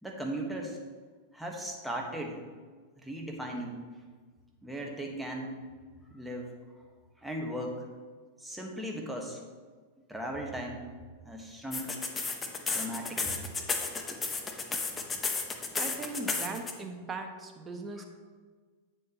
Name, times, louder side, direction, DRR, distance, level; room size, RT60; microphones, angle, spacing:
voice 1, 0.0-0.8 1.3-2.4 3.0-3.9 4.6-5.6 6.1-6.6 7.2-7.9 8.4-9.4 10.1-10.9 11.2-12.0 12.7-13.4 18.0-18.1, right 1 dB, 5° right, 1 dB, 1.4 m, -37 dB
sound 1, 11.7-16.7, left 4 dB, 20° left, 0.9 m, -32 dB
voice 2, 15.8-18.0, right 3 dB, 20° right, 4 dB, 1.1 m, -39 dB
8.8 x 7.2 x 3.0 m, 1.5 s
hypercardioid pair, 105°, 0 cm